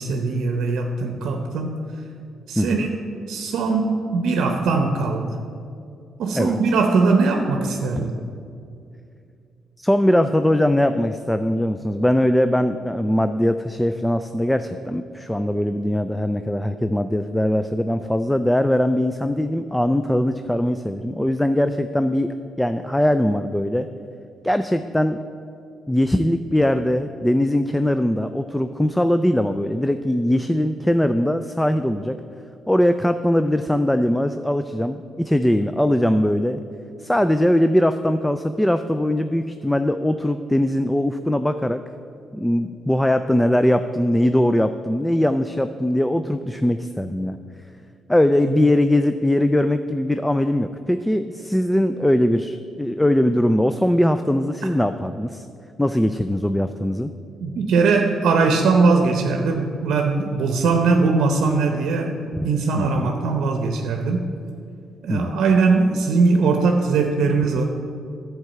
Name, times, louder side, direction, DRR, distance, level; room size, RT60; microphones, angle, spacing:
voice 1, 0.0-1.8 2.5-2.9 3.3-5.3 6.2-8.2 57.4-62.2 62.4-64.2 65.0-67.6, right 4 dB, 75° right, 4 dB, 0.7 m, -20 dB
voice 2, 2.6-2.9 6.3-6.6 9.8-23.9 24.4-25.2 25.9-32.2 32.7-36.6 37.0-41.8 42.3-47.4 48.1-55.5 55.8-57.1 62.8-63.1 65.1-65.3, left 1 dB, 5° left, 9 dB, 0.3 m, -21 dB
11.0 x 4.7 x 7.8 m, 2.5 s
cardioid pair, 115°, 0 cm